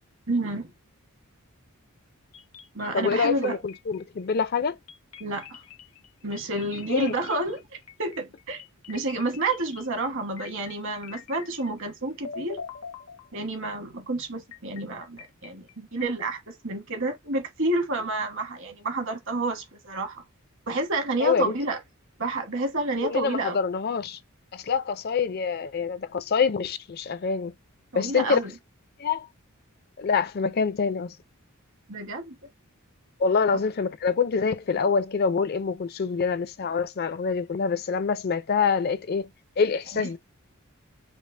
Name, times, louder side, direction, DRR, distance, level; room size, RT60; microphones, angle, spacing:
voice 1, 0.3-0.7 2.7-3.6 5.2-5.6 6.2-7.6 8.0-8.6 8.9-12.6 13.3-20.2 20.7-21.8 22.2-23.6 27.9-28.5 31.9-32.3 39.9-40.1, right 2 dB, 60° right, 1.3 m, -29 dB
sound 1, 2.3-3.1 3.4-4.3 4.9-12.0 12.2-13.7 14.5-16.0, left 6 dB, 75° left, 0.7 m, -45 dB
voice 2, 2.9-4.8 6.9-7.1 21.2-21.6 23.0-24.2 24.5-27.5 27.9-28.4 29.0-29.3 30.0-31.1 33.2-39.3 39.6-40.2, left 5 dB, 45° left, 0.4 m, -25 dB
5.2 x 2.0 x 3.3 m
head